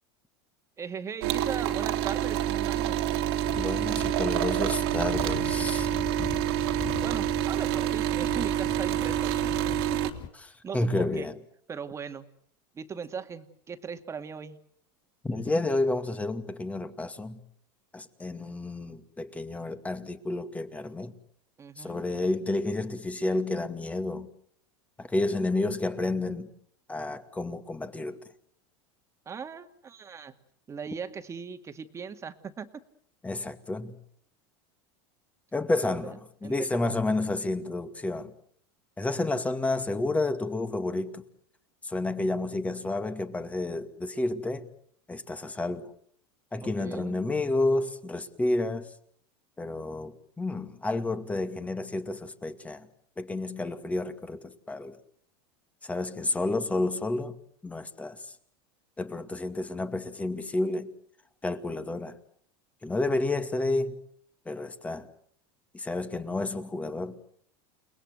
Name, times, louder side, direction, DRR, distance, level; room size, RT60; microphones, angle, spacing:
voice 1, 0.8-3.1 7.0-9.5 9.9-10.0 10.6-11.3 11.7-12.3 12.7-14.6 21.6-22.1 29.3-30.4 30.7-32.7 35.8-36.2 36.4-37.0 46.6-47.3, right 6 dB, 20° right, 2.2 m, -39 dB
sound 1, 1.2-10.1, right 12 dB, 75° right, 3.0 m, -27 dB
sound 2, 3.5-10.3, left 9 dB, 35° left, 1.4 m, -41 dB
voice 2, 3.5-5.9 10.7-11.3 15.2-17.4 17.9-21.1 21.8-24.3 25.0-26.5 26.9-28.2 33.2-33.9 35.5-38.3 39.0-41.2 41.8-44.7 45.1-45.9 46.5-48.9 49.6-52.9 53.2-55.0 55.8-57.3 57.6-58.2 59.0-60.9 61.4-62.1 62.8-64.0 64.5-65.1 65.7-67.2, left 2 dB, 10° left, 2.2 m, -30 dB
30.0 x 20.0 x 8.0 m
supercardioid pair, 135°, 13 cm